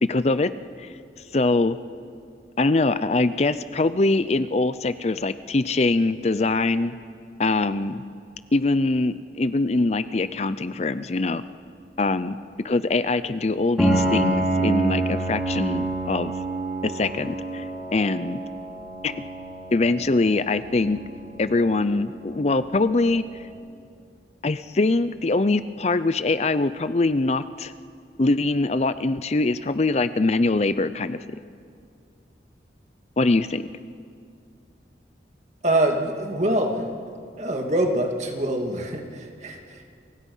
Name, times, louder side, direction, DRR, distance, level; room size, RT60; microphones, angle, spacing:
voice 1, 0.0-0.5 0.8-0.9 1.3-1.8 2.6-6.9 7.4-8.0 8.5-11.4 12.0-12.4 12.6-16.3 16.8-18.4 19.0-19.1 19.7-21.0 21.4-23.3 24.4-27.7 28.2-31.2 33.2-33.7, left 2 dB, 40° left, 13 dB, 0.5 m, -23 dB
Piano, 13.8-23.4, right 2 dB, ahead, 5.5 m, -28 dB
voice 2, 35.6-36.9 37.4-39.8, right 1 dB, 40° right, 2 dB, 2.5 m, -24 dB
30.0 x 24.5 x 5.6 m, 2.3 s
head